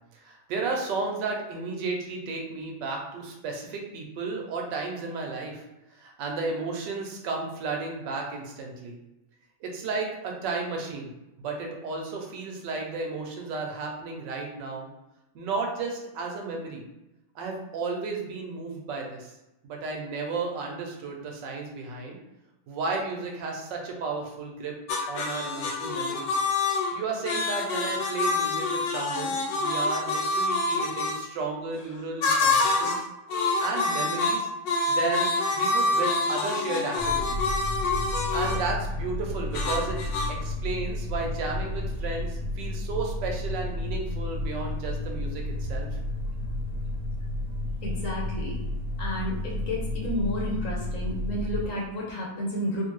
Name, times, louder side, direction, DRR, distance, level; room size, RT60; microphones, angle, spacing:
voice 1, 0.2-5.6 5.9-9.0 9.6-11.1 11.4-14.9 15.3-16.8 17.3-19.3 19.6-22.2 22.7-24.7 25.1-26.3 26.9-33.1 33.6-34.5 34.9-37.6 38.3-40.0 40.3-45.9, right 4 dB, 90° right, 1 dB, 1.4 m, -33 dB
sound 1, 24.9-31.2 32.2-33.0 33.3-38.7 39.5-40.3, left 3 dB, 85° left, 1.2 m, -26 dB
sound 2, 37.0-51.7, left 1 dB, 70° right, 1.4 m, -32 dB
voice 2, 47.8-48.6 49.0-52.9, left 1 dB, 60° left, -3 dB, 0.9 m, -31 dB
3.5 x 2.5 x 3.0 m, 0.94 s
omnidirectional pair, 1.9 m